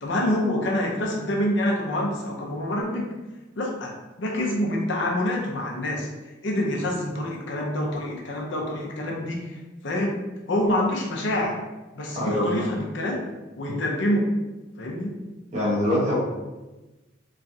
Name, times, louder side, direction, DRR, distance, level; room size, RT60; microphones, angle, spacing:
voice 1, 0.0-3.1 3.6-3.9 4.2-6.1 6.4-9.6 9.8-10.2 10.5-11.6 11.9-13.2 13.6-14.3 14.8-15.1, left 1 dB, 65° left, -1 dB, 0.6 m, -26 dB
voice 2, 12.1-12.7 15.5-16.2, left 1 dB, 35° right, -6 dB, 0.9 m, -24 dB
3.0 x 2.4 x 2.6 m, 1.1 s
head